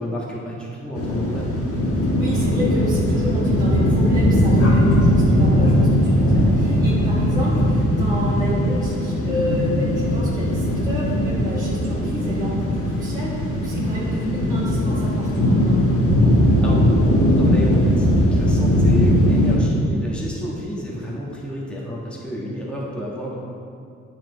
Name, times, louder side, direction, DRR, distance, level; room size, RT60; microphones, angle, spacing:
voice 1, 0.0-1.5 16.5-23.4, equal, 5° left, -6 dB, 1.5 m, -30 dB
sound 1, 0.9-19.6, equal, 50° left, 1.4 m, -19 dB
voice 2, 2.0-15.8, equal, 10° right, -8 dB, 1.5 m, -30 dB
9.0 x 4.5 x 4.0 m, 2.4 s
cardioid pair, 90°, 30 cm